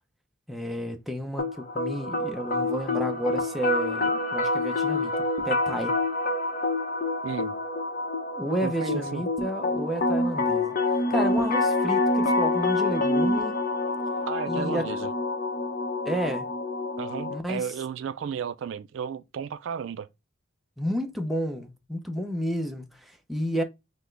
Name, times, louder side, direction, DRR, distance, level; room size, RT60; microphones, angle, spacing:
voice 1, 0.5-5.1 5.4-6.0 8.3-13.5 14.5-14.9 16.0-16.5 17.3-17.7 20.8-23.6, equal, ahead, 0.5 m, -31 dB
sound 1, 1.4-17.4, left 2 dB, 45° left, 0.7 m, -27 dB
voice 2, 7.2-7.5 8.6-9.2 14.2-15.1 17.0-20.1, right 7 dB, 70° right, 0.3 m, -33 dB
5.8 x 2.1 x 3.2 m
head